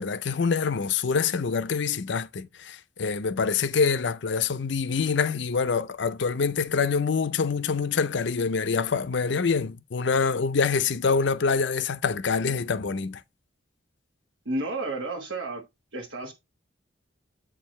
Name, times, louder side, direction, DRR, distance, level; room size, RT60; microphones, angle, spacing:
voice 1, 0.0-13.2, left 5 dB, 65° left, 0.5 m, -25 dB
voice 2, 14.4-15.6 15.9-16.3, right 2 dB, 75° right, 1.3 m, -31 dB
7.8 x 4.6 x 3.1 m
head